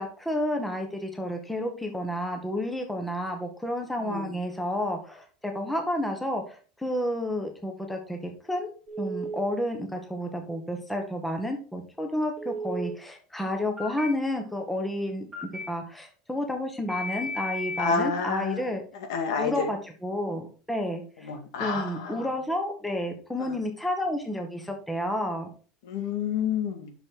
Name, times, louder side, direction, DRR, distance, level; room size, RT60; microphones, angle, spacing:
voice 1, 0.0-15.3 15.7-18.8 19.4-21.3 21.6-25.5, left 1 dB, 5° left, 1.4 m, -31 dB
voice 2, 4.0-4.3 17.8-18.7 19.1-19.7 21.2-22.3 25.8-26.9, left 6 dB, 80° left, 2.1 m, -29 dB
Telephone, 8.9-9.4 12.4-12.9 13.8-14.1 15.3-15.6 16.9-17.9, equal, 20° right, 1.7 m, -34 dB
8.7 x 6.2 x 3.9 m
supercardioid pair, 145°, 2 cm